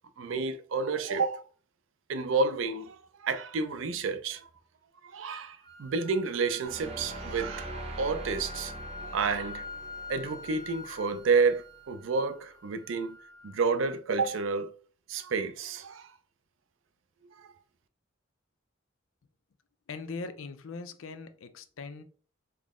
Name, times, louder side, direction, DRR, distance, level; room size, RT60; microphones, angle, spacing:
voice 1, 0.2-1.4 2.1-4.5 5.1-8.7 9.0-9.6 10.1-13.2 13.4-14.7 15.1-16.1, right 4 dB, 75° right, 0.4 m, -30 dB
sound 1, 5.6-13.7, left 2 dB, 20° left, 0.3 m, -46 dB
sound 2, 6.6-11.7, right 1 dB, 30° right, 0.7 m, -43 dB
voice 2, 19.9-22.0, left 4 dB, 85° left, 0.5 m, -40 dB
3.7 x 2.0 x 3.6 m
head